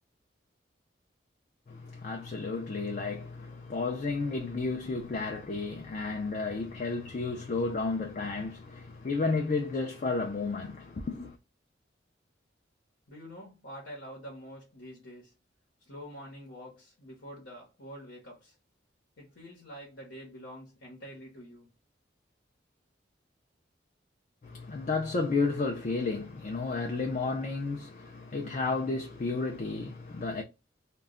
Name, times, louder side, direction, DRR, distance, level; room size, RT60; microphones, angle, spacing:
voice 1, 1.7-11.4 24.4-30.4, left 3 dB, 40° left, 0.4 m, -32 dB
voice 2, 13.1-15.3 15.8-18.6 19.2-21.7, equal, 85° left, 0.9 m, -46 dB
2.2 x 2.1 x 3.5 m
head